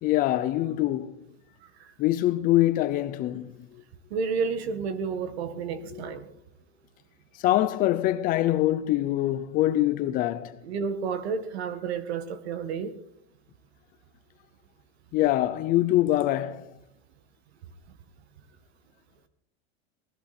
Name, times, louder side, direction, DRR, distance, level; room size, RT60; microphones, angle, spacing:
voice 1, 0.0-1.2 2.0-3.7 5.9-6.0 7.4-10.6 15.1-16.7, left 14 dB, 25° left, 0.6 m, -24 dB
voice 2, 1.6-1.9 4.1-6.3 10.6-12.9, right 5 dB, 70° right, 1.8 m, -31 dB
19.5 x 14.0 x 4.3 m
supercardioid pair, 160°, 32 cm